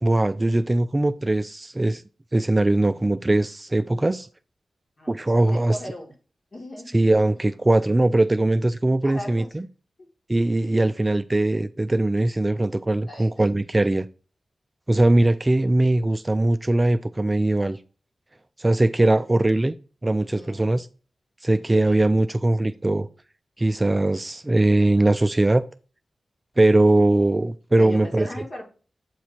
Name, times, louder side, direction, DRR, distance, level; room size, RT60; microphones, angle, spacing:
voice 1, 0.0-2.0 2.3-4.3 5.1-5.8 6.9-9.6 10.3-14.1 14.9-17.8 18.6-19.8 20.0-20.9 21.4-23.1 23.6-25.6 26.6-28.3, right 2 dB, 20° right, 0.3 m, -20 dB
voice 2, 5.0-6.1 6.5-7.0 7.3-7.4 9.0-9.5 10.0-10.1 10.6-10.8 13.0-13.5 20.3-20.7 21.7-22.0 27.8-28.6, left 1 dB, 45° left, 2.4 m, -38 dB
8.1 x 3.1 x 4.2 m
wide cardioid pair, 105°, 0 cm